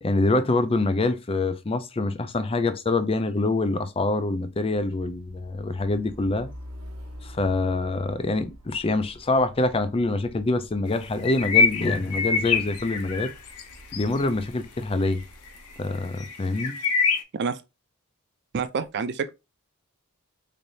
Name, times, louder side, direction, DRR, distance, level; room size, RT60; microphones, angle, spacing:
voice 1, 0.0-6.5 7.2-13.3 13.9-15.2 15.8-16.7, left 2 dB, 25° left, 0.5 m, -25 dB
Truck, 4.8-16.0, equal, 70° right, 1.1 m, -47 dB
sound 1, 11.2-13.6 13.9-14.3 15.1-15.2 15.5-15.7 16.2-17.2, left 4 dB, 90° left, 0.8 m, -24 dB
voice 2, 18.5-19.3, right 5 dB, 50° right, 0.4 m, -28 dB
4.0 x 3.3 x 2.6 m
head